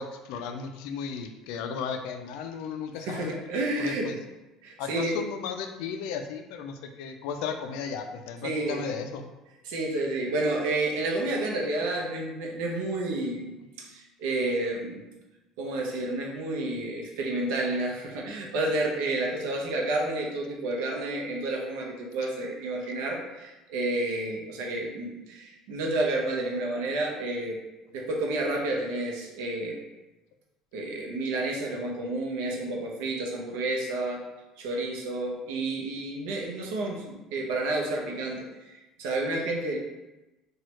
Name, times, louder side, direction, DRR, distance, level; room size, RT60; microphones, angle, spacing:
voice 1, 0.0-3.4 3.8-4.2 4.8-9.3 22.8-22.9, left 6 dB, 75° left, 5 dB, 0.3 m, -35 dB
voice 2, 3.1-4.1 4.6-5.2 8.4-8.8 9.6-15.1 15.6-27.6 27.9-29.8 30.7-34.2 34.6-39.8, right 2 dB, 85° right, 0 dB, 0.6 m, -30 dB
3.0 x 2.3 x 2.9 m, 1.0 s
cardioid pair, 160°, 0 cm